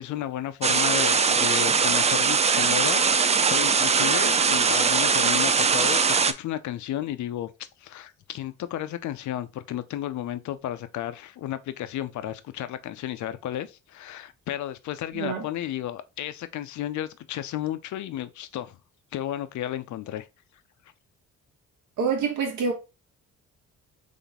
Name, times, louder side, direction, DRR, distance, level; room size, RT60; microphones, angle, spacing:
voice 1, 0.0-3.0 3.5-7.5 7.8-18.8 19.1-20.3, left 12 dB, 70° left, 0.6 m, -33 dB
sound 1, 0.6-6.3, right 5 dB, 20° right, 0.4 m, -21 dB
voice 2, 22.0-22.7, right 5 dB, 70° right, 1.6 m, -26 dB
4.0 x 3.4 x 3.5 m
cardioid pair, 90°, 30 cm